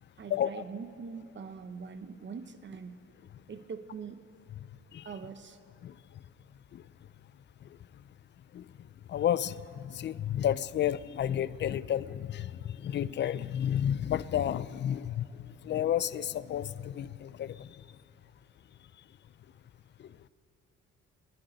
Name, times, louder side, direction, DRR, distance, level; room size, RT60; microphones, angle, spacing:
voice 1, 0.2-3.0 3.5-4.2 5.0-5.6, right 5 dB, 40° right, 10 dB, 0.9 m, -43 dB
voice 2, 9.1-17.8 20.0-20.1, left 10 dB, 40° left, 17 dB, 0.4 m, -31 dB
24.0 x 10.5 x 3.9 m, 2.6 s
cardioid pair, 90°, 30 cm